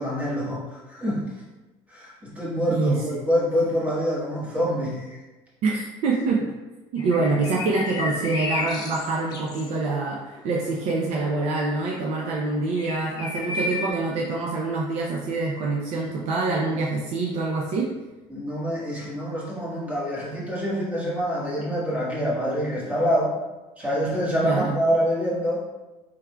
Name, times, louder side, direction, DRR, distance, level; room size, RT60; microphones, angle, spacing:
voice 1, 0.0-1.3 1.9-5.2 18.3-23.3 23.8-25.6, equal, 10° right, -7 dB, 1.4 m, -26 dB
voice 2, 5.6-6.4 6.9-17.9 24.4-24.8, right 3 dB, 60° right, -2 dB, 0.5 m, -25 dB
sound 1, 7.0-13.9, left 3 dB, 30° left, 0.7 m, -33 dB
4.7 x 3.6 x 2.2 m, 1.1 s
cardioid pair, 145°, 12 cm